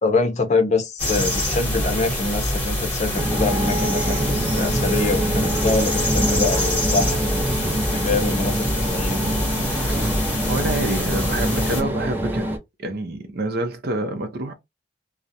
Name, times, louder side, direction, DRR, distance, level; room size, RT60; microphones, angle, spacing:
voice 1, 0.0-7.5 7.9-9.3, left 3 dB, 40° left, 0.6 m, -25 dB
sound 1, 1.0-11.8, left 1 dB, 10° left, 1.1 m, -25 dB
sound 2, 3.2-12.6, right 1 dB, 10° right, 0.6 m, -25 dB
voice 2, 9.7-10.2 10.5-12.5 12.8-14.5, right 2 dB, 55° right, 0.5 m, -27 dB
2.3 x 2.0 x 2.7 m
head